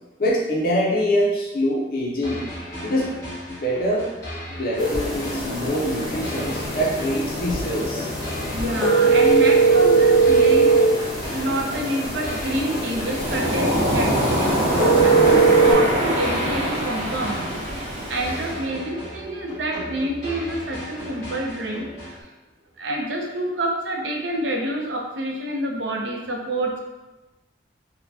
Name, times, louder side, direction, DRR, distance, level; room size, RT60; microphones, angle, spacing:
voice 1, 0.2-2.4 2.8-3.1 3.5-4.1 4.5-8.1, equal, 55° left, -4 dB, 0.5 m, -24 dB
sound 1, 2.2-22.2, equal, 20° left, 1.4 m, -36 dB
sound 2, 4.8-15.7, right 4 dB, ahead, 1.2 m, -21 dB
voice 2, 8.5-10.7 11.0-17.6 18.1-21.9 22.1-22.3 22.8-26.8, right 1 dB, 90° right, 0 dB, 0.6 m, -28 dB
Waves surf, 13.1-18.6, right 1 dB, 35° right, 0.8 m, -23 dB
4.2 x 2.1 x 2.7 m, 1.1 s
head